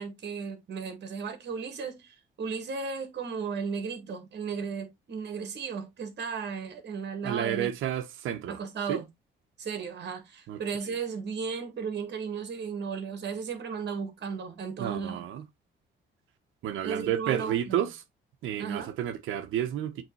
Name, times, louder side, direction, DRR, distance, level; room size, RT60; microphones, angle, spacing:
voice 1, 0.0-7.7 8.5-9.1 9.6-15.2 16.8-17.9 18.6-18.9, right 5 dB, 60° right, 2.5 m, -35 dB
voice 2, 7.2-8.6 8.9-9.0 10.5-10.6 14.8-15.4 16.6-18.0 18.4-20.0, right 11 dB, 85° right, 1.1 m, -31 dB
7.9 x 3.6 x 4.1 m
cardioid pair, 90°, 20 cm